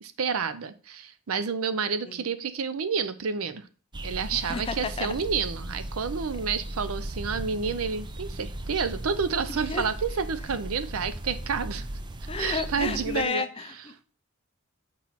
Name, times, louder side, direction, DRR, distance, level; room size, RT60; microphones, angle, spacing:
voice 1, 0.0-3.6 4.0-11.8 12.4-13.4, right 5 dB, 75° right, 13 dB, 0.6 m, -29 dB
sound 1, 3.9-13.3, right 1 dB, 20° right, 0.5 m, -37 dB
voice 2, 4.3-5.1 9.5-9.8 12.3-14.0, left 4 dB, 25° left, 9 dB, 0.6 m, -32 dB
6.1 x 4.5 x 4.2 m, 0.39 s
head